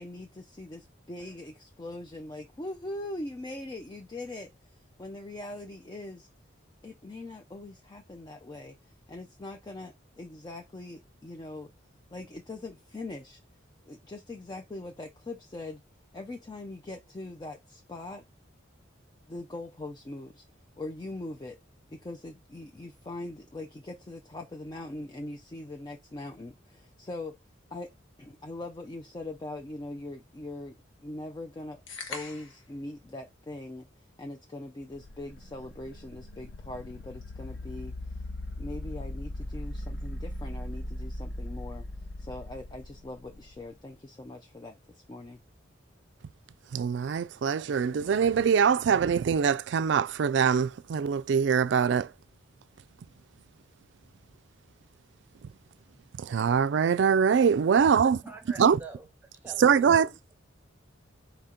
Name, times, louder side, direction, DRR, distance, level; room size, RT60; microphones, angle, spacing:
voice 1, 0.0-6.3 6.8-11.7 12.1-13.4 13.9-15.8 16.1-18.2 19.3-20.4 20.8-21.6 21.9-27.4 27.7-27.9 28.2-31.8 32.1-33.9 34.2-37.9 38.6-41.8 42.2-45.4, left 2 dB, 20° left, 0.4 m, -41 dB
sound 1, 31.9-32.7, left 4 dB, 85° left, 1.2 m, -40 dB
sound 2, 34.9-43.7, left 1 dB, 60° left, 0.7 m, -39 dB
voice 2, 46.7-52.1 56.1-58.2 58.6-58.8 59.6-60.1, right 6 dB, 65° right, 0.3 m, -23 dB
voice 3, 58.0-59.0 59.4-60.1, right 3 dB, 10° right, 0.8 m, -46 dB
4.3 x 2.8 x 3.7 m
head